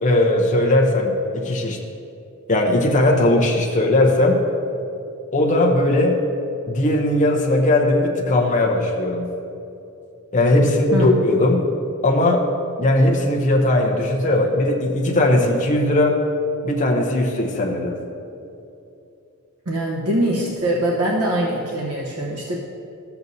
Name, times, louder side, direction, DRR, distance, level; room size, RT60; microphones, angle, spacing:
voice 1, 0.0-1.8 2.5-4.4 5.3-6.2 6.7-9.4 10.3-11.7 12.0-12.5 12.8-16.2 16.6-18.0, left 1 dB, 35° left, 0 dB, 0.7 m, -18 dB
voice 2, 19.7-22.6, right 1 dB, 85° right, -3 dB, 1.0 m, -23 dB
13.5 x 6.9 x 2.7 m, 2.7 s
head